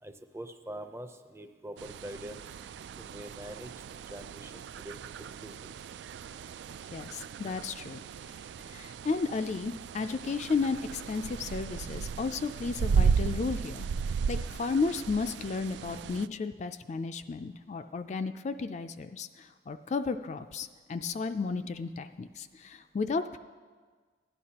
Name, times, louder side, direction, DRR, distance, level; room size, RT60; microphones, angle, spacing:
voice 1, 0.0-2.6 3.0-5.7 6.2-6.3, right 1 dB, 15° right, 7 dB, 0.5 m, -45 dB
sound 1, 1.8-16.3, right 6 dB, 75° right, 0.3 m, -35 dB
voice 2, 6.9-8.0 8.6-13.9 14.3-23.4, left 4 dB, 40° left, 9 dB, 0.3 m, -33 dB
16.5 x 11.0 x 2.9 m, 1.5 s
head